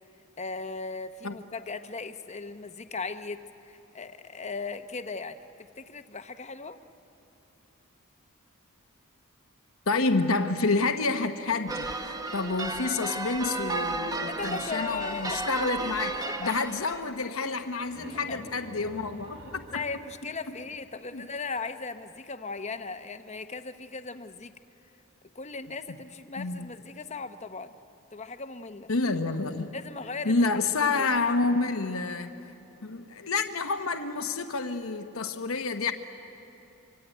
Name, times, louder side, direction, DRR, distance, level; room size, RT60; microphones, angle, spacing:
voice 1, 0.4-5.5 5.8-6.8 14.3-15.4 15.8-15.9 16.2-16.5 18.1-18.7 19.7-24.5 25.3-27.7 28.1-28.9 29.7-30.4 30.8-31.1, left 4 dB, 30° left, 9 dB, 0.9 m, -37 dB
voice 2, 9.9-19.8 21.1-21.3 26.4-26.7 28.9-29.7 30.2-32.4 32.8-35.9, left 3 dB, 75° left, 7 dB, 1.0 m, -29 dB
sound 1, 11.7-17.1, right 3 dB, 15° right, 1.1 m, -33 dB
sound 2, 17.6-21.2, equal, 60° right, 4.8 m, -47 dB
24.5 x 24.5 x 9.1 m, 2.8 s
head